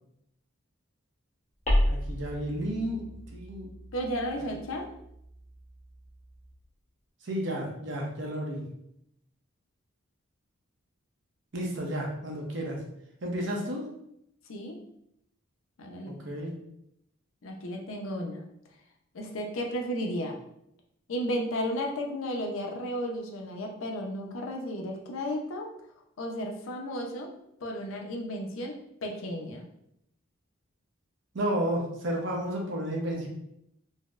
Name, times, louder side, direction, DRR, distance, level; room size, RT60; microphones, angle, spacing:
sound 1, 1.7-6.5, equal, 35° left, 0.9 m, -32 dB
voice 1, 1.8-3.1 3.3-3.7 4.4-4.5 7.2-8.6 11.5-12.8 13.2-13.9 16.1-16.5 31.3-33.3, right 1 dB, 60° right, 0 dB, 0.7 m, -32 dB
voice 2, 3.9-4.9 14.5-14.8 15.8-16.1 17.4-18.4 19.1-20.4 21.1-25.7 26.2-27.3 27.6-28.8 29.0-29.6, equal, 70° left, 2 dB, 0.5 m, -33 dB
4.1 x 2.0 x 2.4 m, 0.76 s
head